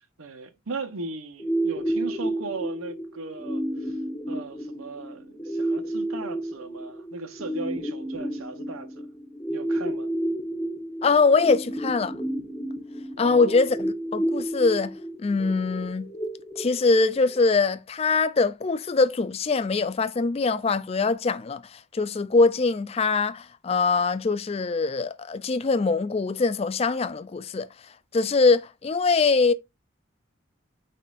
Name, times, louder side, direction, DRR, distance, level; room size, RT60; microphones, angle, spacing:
voice 1, 0.0-4.0 4.3-9.1 9.5-10.1 13.2-13.6, right 3 dB, 85° right, 1.0 m, -37 dB
sound 1, 1.4-17.4, right 1 dB, 15° left, 1.1 m, -31 dB
voice 2, 11.0-12.2 13.2-16.1 16.6-29.5, left 4 dB, 30° left, 0.3 m, -23 dB
8.9 x 4.2 x 2.5 m
head